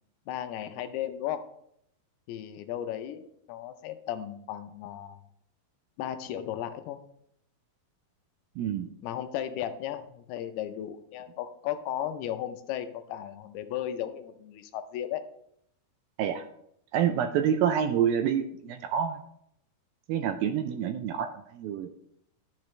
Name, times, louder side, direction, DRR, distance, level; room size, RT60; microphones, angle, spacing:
voice 1, 0.3-1.4 2.3-5.2 6.0-7.0 9.0-15.3, left 11 dB, 85° left, 9 dB, 2.7 m, -35 dB
voice 2, 8.6-8.9 16.2-16.4 16.9-19.2 20.1-21.3 21.5-21.9, right 8 dB, 80° right, 8 dB, 2.1 m, -27 dB
12.0 x 7.2 x 3.2 m, 0.72 s
omnidirectional pair, 4.5 m